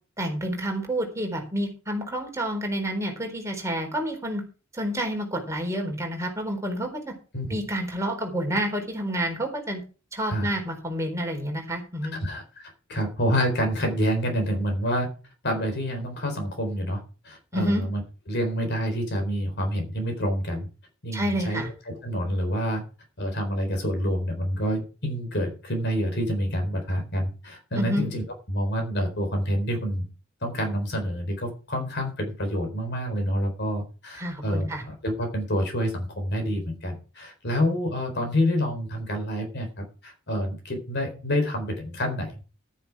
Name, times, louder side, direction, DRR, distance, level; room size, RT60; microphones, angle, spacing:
voice 1, 0.2-4.4 4.7-7.1 7.5-9.8 10.1-12.2 17.5-17.8 21.1-21.7 27.8-28.1 34.2-34.8, equal, 15° right, 2 dB, 4.2 m, -29 dB
voice 2, 12.2-15.1 15.4-18.0 18.3-20.7 21.0-22.8 23.2-30.0 30.4-42.4, equal, 55° left, 5 dB, 4.1 m, -28 dB
11.5 x 10.0 x 4.8 m, 0.35 s
head